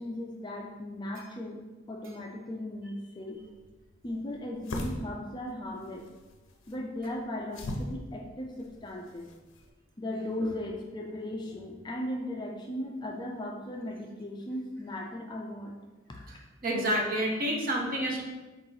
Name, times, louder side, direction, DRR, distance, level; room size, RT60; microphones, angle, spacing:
voice 1, 0.0-3.4 4.0-6.0 6.7-9.2 10.0-15.7, left 1 dB, 20° left, 0 dB, 0.4 m, -37 dB
sound 1, 3.3-9.7, left 1 dB, 65° left, 0.6 m, -42 dB
voice 2, 16.6-18.2, equal, 45° right, 0 dB, 0.8 m, -29 dB
4.6 x 2.9 x 3.8 m, 1.2 s
head